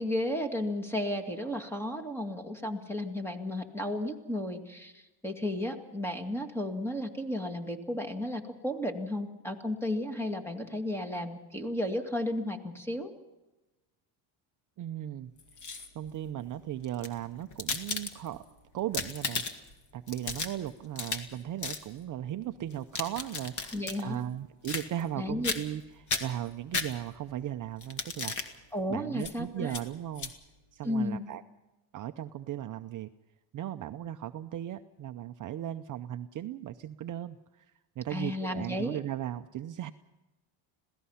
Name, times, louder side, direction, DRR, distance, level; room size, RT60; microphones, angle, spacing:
voice 1, 0.0-13.1 23.7-24.2 25.2-25.5 28.7-29.7 30.8-31.2 38.1-39.0, left 1 dB, 5° left, 6 dB, 2.1 m, -33 dB
voice 2, 14.8-15.3 15.9-18.4 18.7-19.4 19.9-28.6 28.9-30.3 30.7-31.4 31.9-33.1 33.5-37.7 38.0-39.9, right 12 dB, 40° right, 8 dB, 0.7 m, -37 dB
sound 1, 15.4-16.1 16.8-18.4 18.8-19.7 20.1-21.3 21.6-21.8 22.7-24.0 24.6-25.2 25.4-25.8 26.1-27.3 27.8-28.5 29.2-29.3 29.7-29.8 30.2-30.3, left 4 dB, 35° left, 2.1 m, -35 dB
26.5 x 17.5 x 5.7 m, 1.0 s
cardioid pair, 130°, 50 cm